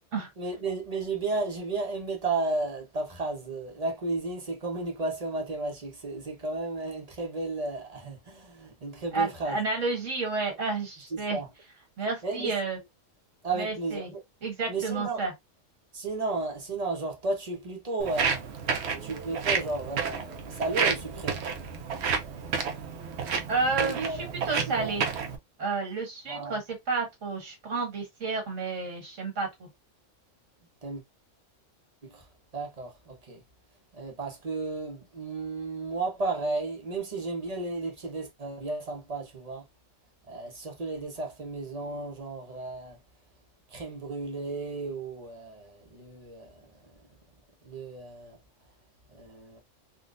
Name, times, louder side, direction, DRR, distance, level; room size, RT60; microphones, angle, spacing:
voice 1, 0.4-9.6 11.1-11.5 12.2-12.5 13.4-14.2 14.7-15.3 15.9-18.5 19.0-21.4 23.8-24.3 24.6-24.9 26.3-26.6 30.8-31.0 32.0-32.2 32.5-33.4 33.9-39.6 40.3-43.0 43.7-46.6 47.6-48.4 49.1-49.6, right 3 dB, 35° right, 0.9 m, -33 dB
voice 2, 9.1-11.4 12.0-12.8 13.5-14.1 14.4-15.3 23.5-25.0 25.6-29.7, right 4 dB, 80° right, 1.8 m, -31 dB
Walk footsteps, 18.0-25.4, right 6 dB, 65° right, 0.9 m, -31 dB
3.7 x 2.4 x 2.5 m
omnidirectional pair, 1.3 m